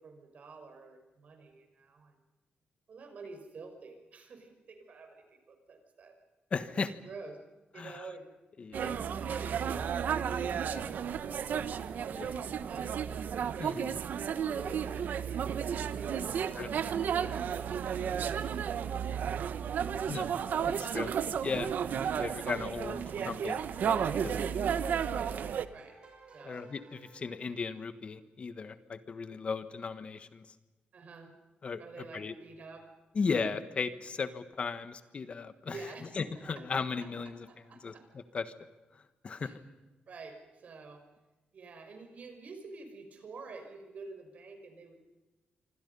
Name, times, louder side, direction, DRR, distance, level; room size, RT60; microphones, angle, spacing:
voice 1, 0.0-2.2 2.9-6.2 7.0-7.4 7.7-8.3 8.8-11.4 12.1-14.0 14.5-20.3 25.1-25.4 25.7-26.0 26.3-26.7 30.9-31.3 31.8-32.9 35.7-37.1 37.5-38.1 39.4-39.6 40.1-41.0 41.5-45.0, right 4 dB, 50° right, 6 dB, 5.5 m, -49 dB
voice 2, 6.5-6.9 7.8-8.0 8.6-8.9 10.6-10.9 12.2-12.3 13.6-14.1 16.6-16.7 20.1-20.3 20.6-21.1 21.4-21.7 22.1-23.6 23.8-24.4 26.4-30.4 31.6-31.8 32.1-32.3 33.1-35.8 36.1-37.5 37.8-38.5 38.9-39.6, left 5 dB, 35° left, 12 dB, 1.3 m, -36 dB
sound 1, 8.7-25.6, right 8 dB, 65° right, 1.2 m, -33 dB
sound 2, 19.5-27.9, right 2 dB, 35° right, 6.9 m, -56 dB
27.0 x 25.5 x 5.5 m, 1.1 s
wide cardioid pair, 155°, 3 cm